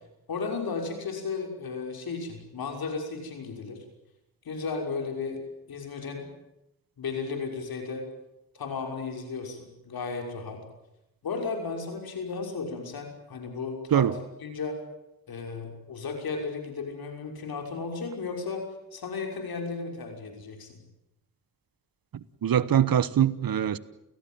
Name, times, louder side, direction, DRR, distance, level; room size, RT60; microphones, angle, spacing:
voice 1, 0.3-3.8 4.4-5.4 5.7-6.3 7.0-8.1 8.5-10.6 11.2-14.8 15.3-20.8, left 4 dB, 80° left, 6.0 m, -34 dB
voice 2, 22.4-23.8, right 10 dB, 70° right, 1.2 m, -22 dB
29.5 x 17.0 x 9.2 m
cardioid pair, 65°, 36 cm